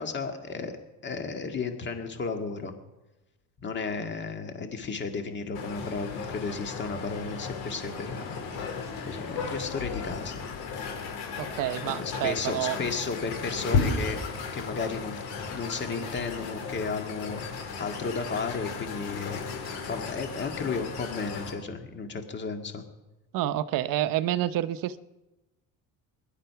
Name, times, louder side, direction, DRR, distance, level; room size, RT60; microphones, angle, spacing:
voice 1, 0.0-2.7 3.6-8.4 9.0-10.4 11.8-14.2 14.5-15.2 15.5-19.4 19.9-22.8, left 4 dB, 30° left, 2.0 m, -34 dB
sound 1, 5.5-21.5, left 5 dB, 85° left, 4.8 m, -34 dB
voice 2, 11.4-12.8 23.3-25.0, right 13 dB, 65° right, 0.9 m, -28 dB
21.5 x 11.0 x 5.8 m
cardioid pair, 145°, 37 cm